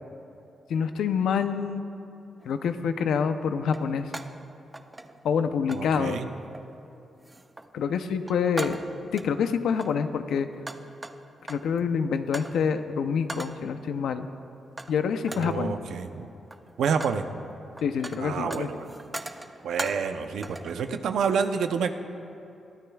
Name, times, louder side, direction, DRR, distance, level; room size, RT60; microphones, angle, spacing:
voice 1, 0.7-1.8 2.5-4.1 5.2-6.2 7.7-8.8 9.1-10.5 11.5-14.3 14.9-15.7 17.8-18.7, left 6 dB, 85° left, 9 dB, 0.6 m, -26 dB
sound 1, 2.4-2.6 3.7-4.4 4.7-5.4 5.7-5.9 6.5-6.8 7.2-7.7 8.1-9.3 9.7-11.8 12.3-12.6 13.3-13.7 14.8-15.0 15.2-15.6 16.3-17.2 17.5-20.2 20.4-20.8, right 2 dB, 15° right, 0.6 m, -39 dB
voice 2, 5.7-6.3 15.3-16.3 16.8-17.2 18.2-19.0 19.6-21.9, right 6 dB, 85° right, 7 dB, 0.6 m, -28 dB
22.5 x 13.5 x 2.3 m, 2.8 s
cardioid pair, 100°, 0 cm